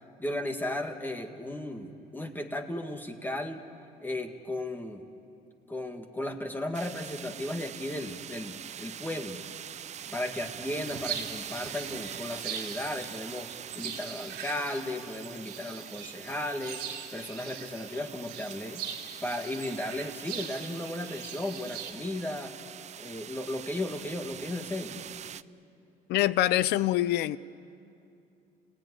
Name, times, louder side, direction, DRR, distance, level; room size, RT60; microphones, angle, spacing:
voice 1, 0.2-3.6 4.0-5.0 5.7-9.4 10.1-13.5 13.7-16.8 17.1-18.8 19.2-22.5 23.0-25.0, left 1 dB, 10° left, 1.9 m, -35 dB
sound 1, 6.7-25.4, right 9 dB, 45° right, 0.5 m, -44 dB
sound 2, 10.7-21.9, right 8 dB, 85° right, 2.7 m, -42 dB
voice 2, 26.1-27.4, left 15 dB, 85° left, 0.6 m, -25 dB
29.5 x 17.0 x 9.9 m
cardioid pair, 110°, 17 cm